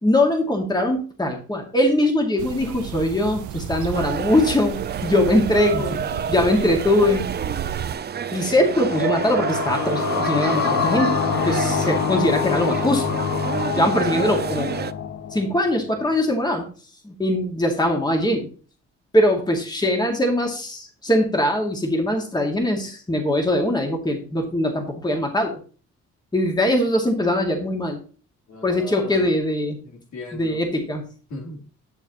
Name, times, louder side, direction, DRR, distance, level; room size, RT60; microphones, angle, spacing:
voice 1, 0.0-6.0 6.3-7.3 8.3-13.2 13.7-14.7 15.3-16.7 17.0-18.5 19.1-25.6 26.3-28.0 28.6-29.8 30.3-31.0, left 1 dB, 15° left, 2.2 m, -21 dB
sound 1, 2.4-8.0, right 10 dB, 75° right, 0.7 m, -33 dB
sound 2, 3.9-14.9, right 7 dB, 35° right, 0.5 m, -29 dB
voice 2, 5.7-6.3 28.5-29.4 29.8-30.6 31.3-31.6, left 2 dB, 70° left, 3.5 m, -36 dB
sound 3, 8.6-16.0, left 8 dB, 55° left, 0.8 m, -26 dB
10.5 x 6.7 x 3.0 m
cardioid pair, 90°, 30 cm